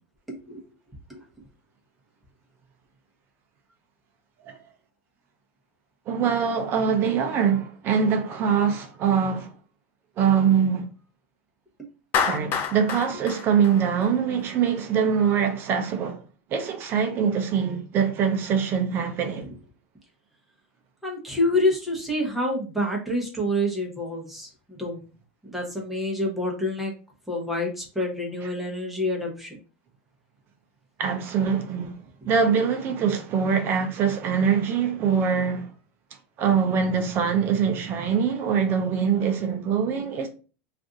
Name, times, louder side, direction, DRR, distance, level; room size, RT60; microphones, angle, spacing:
voice 1, 0.3-0.6 1.1-1.2 11.8-11.9 21.0-25.0 25.4-26.9 27.3-29.6 32.2-32.3, left 1 dB, ahead, 0.9 m, -27 dB
voice 2, 6.1-9.5 10.2-10.9 12.2-16.2 16.5-19.5 28.4-28.5 31.0-32.0 32.3-35.7 36.4-40.3, right 7 dB, 35° right, 0.5 m, -23 dB
Clapping, 12.1-14.4, left 7 dB, 30° left, 0.4 m, -27 dB
2.5 x 2.5 x 3.7 m
supercardioid pair, 145°, 7 cm